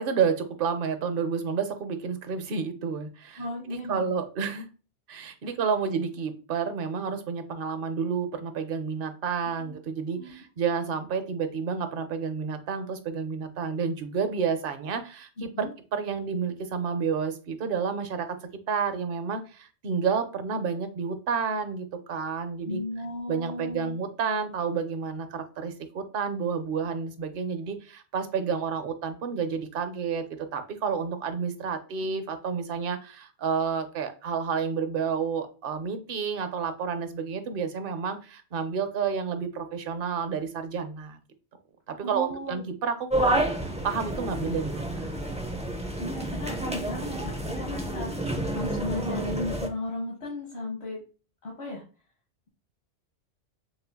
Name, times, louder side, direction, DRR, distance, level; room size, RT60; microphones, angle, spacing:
voice 1, 0.0-3.4 3.7-4.7 5.1-18.3 18.7-22.8 23.3-30.2 30.5-41.2 41.9-45.1, right 6 dB, 55° right, 8 dB, 0.8 m, -30 dB
voice 2, 3.4-4.1 5.4-5.6 9.6-9.7 10.2-10.3 15.4-15.7 22.6-24.0 42.0-42.6 45.9-51.0 51.4-51.8, left 1 dB, 65° left, -3 dB, 1.5 m, -35 dB
sound 1, 43.1-49.7, right 1 dB, 10° right, 0.4 m, -30 dB
6.2 x 2.7 x 2.2 m, 0.36 s
omnidirectional pair, 1.2 m